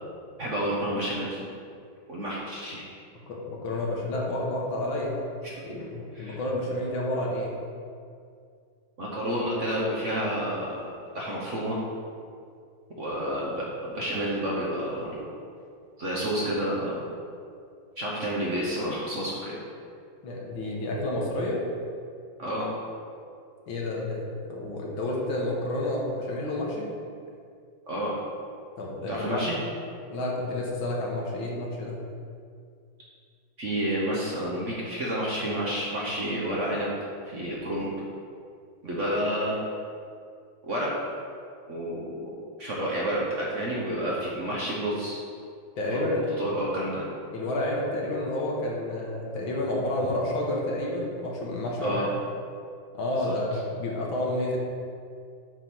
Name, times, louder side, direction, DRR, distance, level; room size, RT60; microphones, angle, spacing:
voice 1, 0.4-1.4 2.1-2.8 5.4-5.8 6.1-6.4 9.0-11.8 13.0-15.2 16.0-17.0 18.0-19.6 22.4-22.6 27.9-28.2 29.1-29.5 33.6-36.9 37.2-37.9 38.8-39.6 40.6-40.9 41.7-42.3 42.6-45.2 45.9-46.0 46.4-47.1 51.8-52.1 53.1-53.3, equal, 45° right, -5 dB, 1.1 m, -30 dB
voice 2, 3.3-5.2 5.6-7.5 20.2-21.6 23.7-26.9 28.8-29.4 30.1-32.0 45.8-46.2 47.3-52.1 52.9-54.6, left 1 dB, 75° left, -2 dB, 2.0 m, -30 dB
7.3 x 3.8 x 6.1 m, 2.3 s
omnidirectional pair, 2.2 m